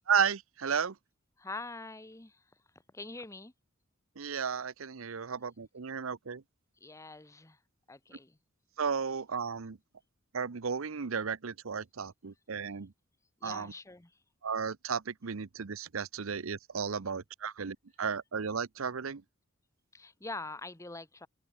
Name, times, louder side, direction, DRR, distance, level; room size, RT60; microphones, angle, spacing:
voice 1, 0.1-1.0 4.2-6.4 8.8-9.8 10.3-12.9 13.4-13.7 14.4-19.2, right 6 dB, 80° right, 0.7 m, -34 dB
voice 2, 1.4-2.4 2.9-3.5 6.8-7.6 7.9-8.4 13.4-14.1 19.9-21.3, left 3 dB, 15° left, 0.9 m, -44 dB
open air
head